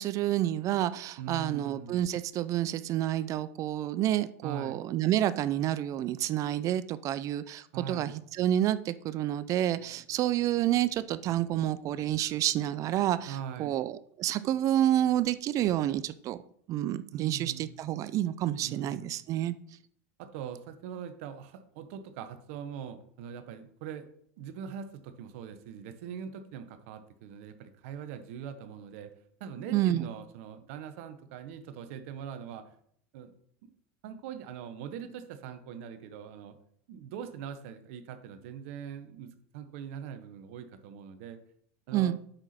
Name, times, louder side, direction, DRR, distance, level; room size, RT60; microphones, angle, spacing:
voice 1, 0.0-16.4 16.7-19.5 29.7-30.1 41.9-42.2, right 12 dB, 45° right, 0.4 m, -29 dB
voice 2, 1.2-2.0 4.4-4.8 7.7-8.1 13.3-13.8 17.1-17.8 18.6-19.1 20.2-24.1 24.4-29.1 29.4-32.8 33.1-33.3 33.6-33.7 34.0-36.6 36.9-41.4 41.9-42.1, right 8 dB, 70° right, 1.0 m, -42 dB
7.9 x 5.8 x 4.3 m
hypercardioid pair, 95°, 8 cm